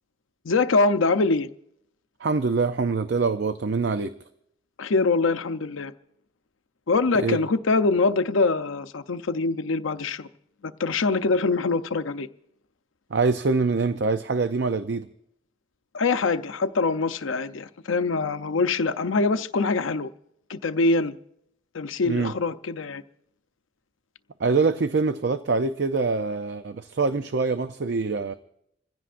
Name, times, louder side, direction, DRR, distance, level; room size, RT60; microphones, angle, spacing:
voice 1, 0.4-1.5 4.8-5.9 6.9-10.3 10.6-12.3 15.9-20.1 20.5-21.1 21.7-23.0, left 3 dB, 85° left, 0.7 m, -24 dB
voice 2, 2.2-4.1 7.2-7.4 13.1-15.1 22.0-22.3 24.4-28.3, right 4 dB, 60° right, 0.5 m, -24 dB
26.5 x 15.5 x 2.5 m
head